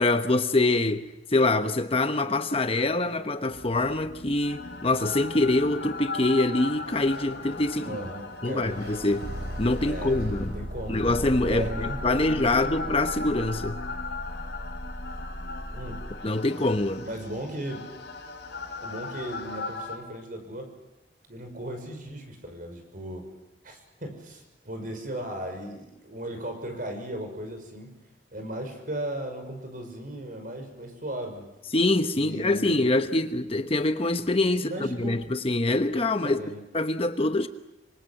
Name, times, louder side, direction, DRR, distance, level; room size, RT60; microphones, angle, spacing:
voice 1, 0.0-8.0 8.4-9.3 9.6-10.6 10.9-13.8 16.2-17.1 31.7-36.4 36.7-37.5, left 2 dB, 30° left, 1.0 m, -25 dB
sound 1, 3.5-20.0, left 2 dB, 70° left, 4.8 m, -36 dB
Sliding door, 6.8-11.8, right 1 dB, 65° right, 5.8 m, -48 dB
voice 2, 7.8-8.8 9.9-11.2 11.4-12.3 12.6-12.8 15.7-16.0 17.0-17.8 18.8-20.7 21.3-23.3 23.6-27.9 28.3-31.5 32.1-32.9 34.5-35.2 36.2-36.6, right 1 dB, 50° right, 5.9 m, -36 dB
27.0 x 25.0 x 7.8 m
head